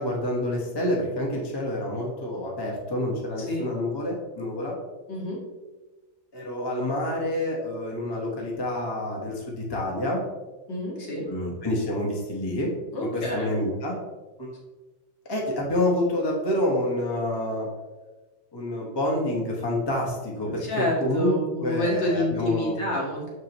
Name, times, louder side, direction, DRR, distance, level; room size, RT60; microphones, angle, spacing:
voice 1, 0.0-4.7 6.3-10.2 11.3-12.7 13.1-14.0 14.4-14.5 15.3-17.7 18.5-22.8, left 1 dB, 15° left, -2 dB, 0.8 m, -28 dB
voice 2, 5.1-5.4 10.7-11.3 12.9-13.5 20.4-23.3, left 1 dB, 60° left, -4 dB, 2.4 m, -28 dB
6.8 x 6.2 x 3.0 m, 1.2 s
omnidirectional pair, 2.3 m